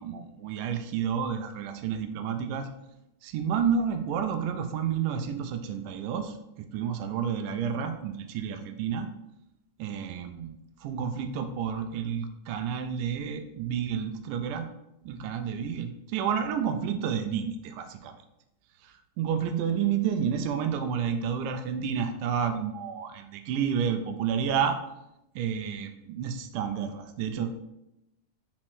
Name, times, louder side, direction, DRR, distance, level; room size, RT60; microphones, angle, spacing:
voice 1, 0.0-2.7 3.2-6.4 6.7-9.1 9.8-14.7 15.1-18.2 18.8-24.8 25.4-27.6, right 7 dB, 80° right, 8 dB, 2.2 m, -30 dB
5.8 x 4.3 x 4.6 m, 0.86 s
omnidirectional pair, 3.8 m